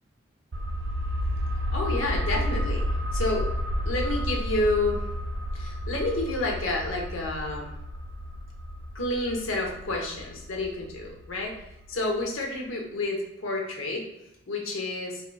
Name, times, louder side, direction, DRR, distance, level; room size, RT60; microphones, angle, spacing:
sound 1, 0.5-11.9 12.2-12.3, equal, 60° right, 0.4 m, -31 dB
voice 1, 1.7-2.8 3.1-3.5 3.8-5.0 5.5-7.7 8.9-11.6 11.9-14.1 14.5-15.2, left 2 dB, 90° left, 0 dB, 0.9 m, -29 dB
4.4 x 2.7 x 2.2 m, 0.88 s
head